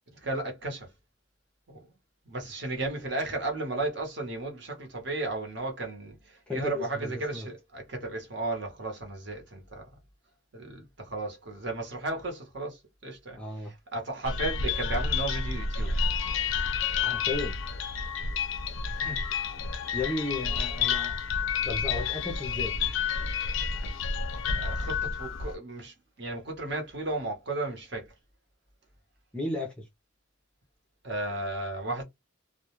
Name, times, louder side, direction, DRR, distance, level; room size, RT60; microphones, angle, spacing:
voice 1, 0.1-0.9 1.7-1.8 2.3-9.8 10.5-15.9 18.6-19.2 24.5-28.1 31.0-32.0, right 2 dB, 55° right, 0.9 m, -34 dB
voice 2, 6.5-7.5 13.4-13.7 17.0-17.5 19.9-21.2 21.6-22.7 29.3-29.8, left 3 dB, 5° left, 0.5 m, -34 dB
sound 1, 14.2-25.6, left 5 dB, 70° left, 0.4 m, -30 dB
2.2 x 2.1 x 2.9 m
head